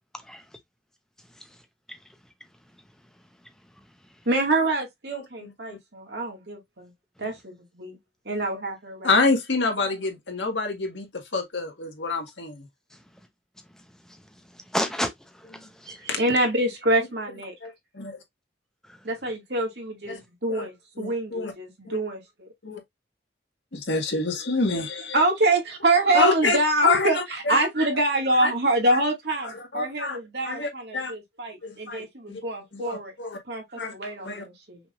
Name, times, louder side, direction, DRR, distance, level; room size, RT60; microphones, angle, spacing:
voice 1, 4.3-6.9 7.2-8.0 8.3-9.1 9.8-10.0 15.9-17.5 19.0-22.5 25.1-33.1 33.5-34.8, right 2 dB, 65° right, 2.2 m, -26 dB
voice 2, 5.1-5.8 7.2-7.3 8.3-8.4 9.0-11.1 11.3-12.6 16.1-16.2 17.6-18.2 20.1-20.2 20.5-20.7 21.0-21.5 22.6-22.8 23.7-25.2 26.1-26.6 26.8-27.7 28.4-28.5 28.9-29.0 29.7-30.2 30.4-31.1 31.6-32.4 32.7-33.4 33.8-33.9 34.2-34.4, left 3 dB, 85° left, 1.7 m, -27 dB
voice 3, 14.5-16.0 18.8-19.0, left 1 dB, 5° left, 0.8 m, -32 dB
5.8 x 3.7 x 2.5 m
head